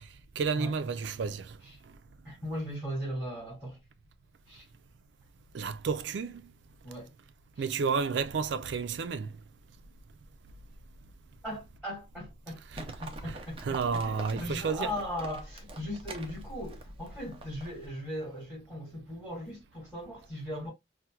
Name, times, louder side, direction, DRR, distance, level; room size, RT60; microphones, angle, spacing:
voice 1, 0.4-1.5 5.5-6.4 7.6-9.3 13.2-13.3 13.6-14.9, right 5 dB, 85° right, 0.4 m, -31 dB
voice 2, 2.2-3.8 4.5-4.7 6.8-7.1 7.5-7.7 11.4-20.7, equal, 5° right, 2.4 m, -38 dB
Livestock farm animals working animals, 12.7-17.9, right 1 dB, 30° right, 0.6 m, -44 dB
4.3 x 2.2 x 2.2 m
head